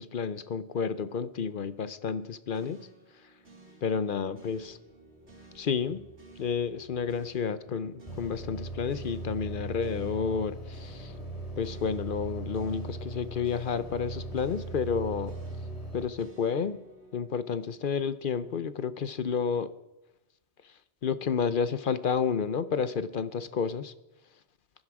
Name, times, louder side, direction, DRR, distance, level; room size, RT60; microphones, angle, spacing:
voice 1, 0.0-2.9 3.8-4.8 5.5-6.1 6.4-11.1 11.6-15.3 15.9-16.8 17.1-19.7 20.6-23.9, left 6 dB, 55° left, 13 dB, 0.8 m, -31 dB
sound 1, 2.5-18.8, right 1 dB, 90° right, 3.3 m, -54 dB
sound 2, 8.1-16.1, right 2 dB, 35° left, 3.1 m, -39 dB
21.5 x 11.5 x 4.8 m, 0.97 s
omnidirectional pair, 1.1 m